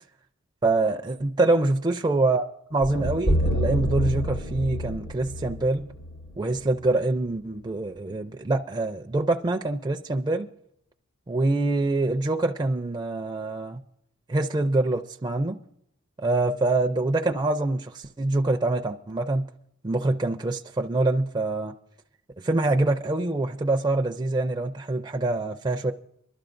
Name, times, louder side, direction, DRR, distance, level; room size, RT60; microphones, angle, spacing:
voice 1, 0.6-5.9 6.4-10.5 11.3-13.8 14.3-15.6 16.2-19.4 19.8-21.7 22.4-25.9, right 2 dB, 20° right, 0.4 m, -25 dB
sound 1, 2.8-7.0, equal, 60° left, 1.4 m, -28 dB
25.0 x 12.0 x 2.5 m
head